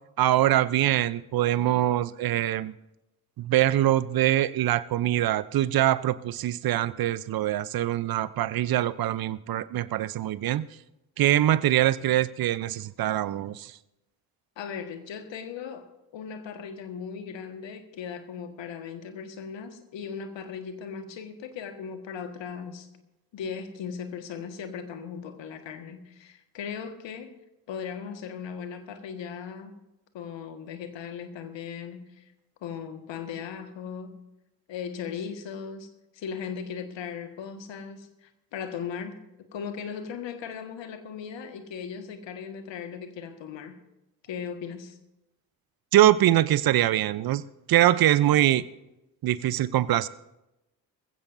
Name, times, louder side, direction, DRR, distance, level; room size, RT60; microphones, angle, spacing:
voice 1, 0.2-2.7 3.4-10.7 11.2-13.7 45.9-47.4 47.7-48.6 49.2-50.1, right 13 dB, 45° right, 18 dB, 0.7 m, -23 dB
voice 2, 14.6-22.9 23.3-27.3 27.7-29.8 30.1-32.3 32.6-34.2 34.7-43.8 44.3-45.0, left 7 dB, 60° left, 7 dB, 1.7 m, -38 dB
20.0 x 15.5 x 2.7 m, 0.94 s
hypercardioid pair, 40°, 50 cm